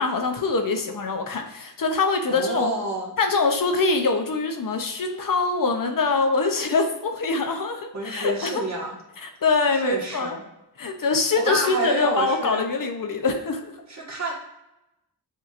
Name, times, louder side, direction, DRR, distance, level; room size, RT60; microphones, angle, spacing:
voice 1, 0.0-2.7 3.2-8.6 9.2-10.3 10.8-13.7, left 3 dB, 55° left, 4 dB, 0.7 m, -24 dB
voice 2, 2.3-3.1 7.9-9.0 9.7-10.4 11.4-12.7 13.9-14.3, right 1 dB, 45° right, -3 dB, 1.6 m, -28 dB
7.1 x 2.8 x 2.5 m, 0.92 s
cardioid pair, 70°, 39 cm